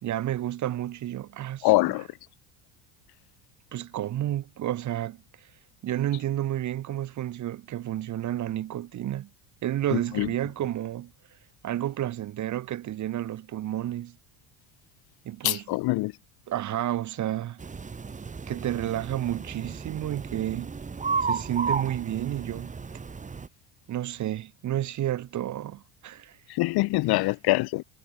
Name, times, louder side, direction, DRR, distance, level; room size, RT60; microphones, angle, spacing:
voice 1, 0.0-1.9 3.7-5.2 5.8-9.3 9.6-11.1 11.6-14.1 15.2-15.8 16.5-17.6 18.5-20.7 21.2-22.7 23.9-26.4, right 12 dB, 40° right, 3.4 m, -31 dB
voice 2, 1.6-2.1 9.9-10.3 15.4-16.1 26.5-27.8, left 20 dB, 55° left, 2.1 m, -24 dB
sound 1, 17.6-23.5, right 5 dB, 15° right, 4.1 m, -33 dB
cardioid pair, 155°, 44 cm